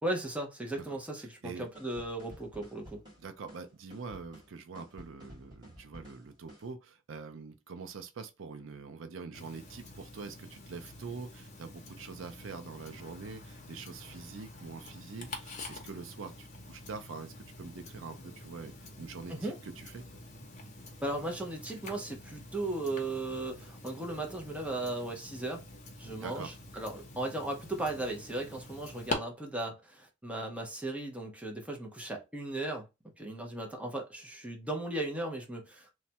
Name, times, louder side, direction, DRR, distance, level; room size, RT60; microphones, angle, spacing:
voice 1, 0.0-3.0 19.3-19.6 21.0-25.6 26.0-32.9 33.2-35.9, right 2 dB, 5° right, 0.6 m, -36 dB
voice 2, 0.8-1.7 3.2-20.0 26.2-26.5, right 4 dB, 70° right, 0.5 m, -45 dB
sound 1, 1.7-6.7, equal, 20° right, 1.7 m, -53 dB
Tick-tock, 9.3-29.1, left 2 dB, 35° left, 0.7 m, -46 dB
3.1 x 2.2 x 2.8 m
head